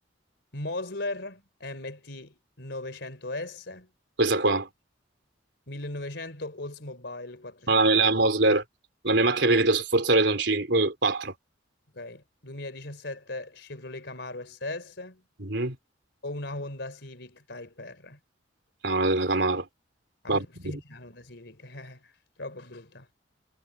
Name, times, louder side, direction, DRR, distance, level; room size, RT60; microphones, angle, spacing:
voice 1, 0.5-3.9 5.7-8.1 11.9-15.2 16.2-18.2 20.2-22.1 22.4-23.1, left 2 dB, 65° left, 4.4 m, -38 dB
voice 2, 4.2-4.7 7.7-8.6 9.0-11.3 15.4-15.8 18.8-19.6 20.3-20.7, right 2 dB, 70° right, 4.0 m, -23 dB
head